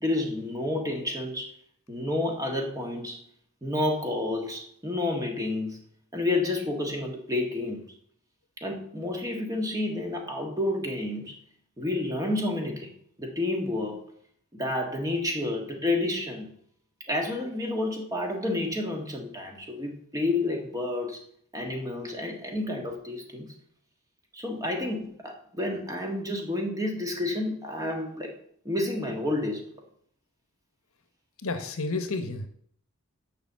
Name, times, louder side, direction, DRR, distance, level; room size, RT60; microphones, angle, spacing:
voice 1, 0.0-1.5 1.9-3.2 3.6-5.8 6.1-7.8 8.6-11.3 11.8-12.9 13.2-14.0 14.5-16.5 17.1-21.2 21.5-23.5 24.3-28.3 28.6-29.7, left 2 dB, 15° right, 1 dB, 1.5 m, -30 dB
voice 2, 31.4-32.5, left 3 dB, 70° left, 8 dB, 1.1 m, -31 dB
6.9 x 5.4 x 7.3 m, 0.63 s
head